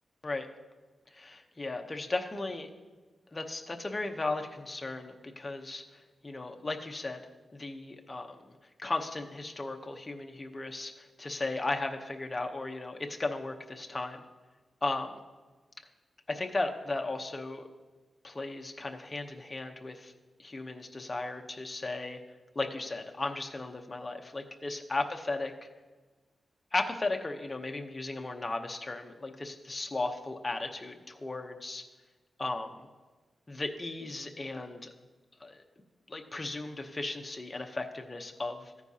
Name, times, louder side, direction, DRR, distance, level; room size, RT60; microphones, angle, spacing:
voice 1, 1.1-2.7 3.3-5.8 6.2-7.2 7.5-8.5 8.8-14.2 14.8-15.1 16.3-17.7 18.2-20.1 20.4-22.2 22.5-25.5 26.7-31.8 32.4-32.7 33.5-34.9 35.4-35.6 36.1-38.7, left 2 dB, 25° left, 3 dB, 0.8 m, -36 dB
14.5 x 9.6 x 2.8 m, 1.3 s
wide cardioid pair, 130°, 0 cm